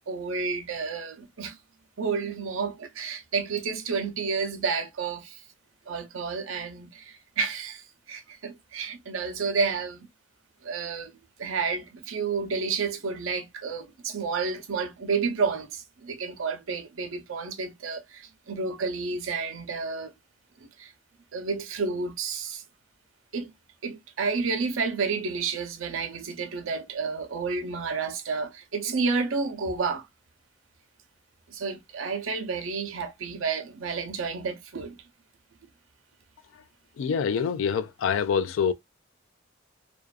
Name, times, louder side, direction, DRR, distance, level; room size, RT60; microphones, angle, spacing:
voice 1, 0.0-1.6 2.0-5.4 5.9-10.1 10.6-20.1 20.8-20.9 21.3-22.6 23.3-23.5 23.8-30.1 31.5-35.0, right 4 dB, 90° right, 0.7 m, -30 dB
voice 2, 37.0-38.7, left 6 dB, 75° left, 0.3 m, -25 dB
2.5 x 2.4 x 2.2 m
head